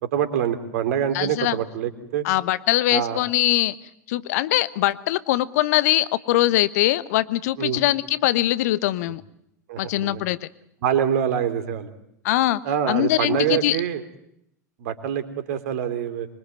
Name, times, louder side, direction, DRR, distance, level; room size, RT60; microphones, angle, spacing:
voice 1, 0.0-2.2 2.9-3.2 7.6-7.8 9.7-10.2 10.8-11.9 12.6-14.0 14.8-16.3, right 9 dB, 60° right, 9 dB, 3.4 m, -25 dB
voice 2, 1.1-1.6 2.2-3.7 4.1-9.2 9.8-10.5 12.2-12.6 12.9-13.8, left 15 dB, 60° left, 16 dB, 1.1 m, -22 dB
25.5 x 23.5 x 9.4 m, 0.76 s
figure-of-eight pair, 85°, 10 cm